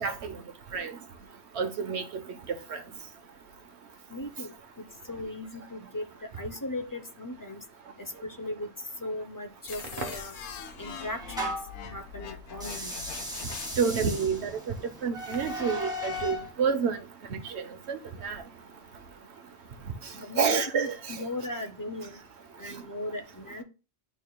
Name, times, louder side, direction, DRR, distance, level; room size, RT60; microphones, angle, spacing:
voice 1, 0.0-0.4 0.7-0.9 1.5-2.0 2.7-2.8 13.8-14.6 15.0-17.0 17.3-18.4 20.4-21.2, right 6 dB, 75° right, 1.2 m, -29 dB
voice 2, 4.1-6.1 6.3-7.6 8.0-8.7 9.0-10.4 10.8-11.6 11.9-12.9 20.1-22.2 22.6-23.6, left 1 dB, 25° left, 0.6 m, -38 dB
Crackle, 9.6-15.7, right 2 dB, 55° right, 1.3 m, -48 dB
sound 1, 9.7-14.1, left 9 dB, 85° left, 0.9 m, -43 dB
sound 2, 10.0-11.8 12.5-16.5, left 1 dB, 5° right, 1.6 m, -37 dB
11.0 x 4.1 x 2.2 m
omnidirectional pair, 1.1 m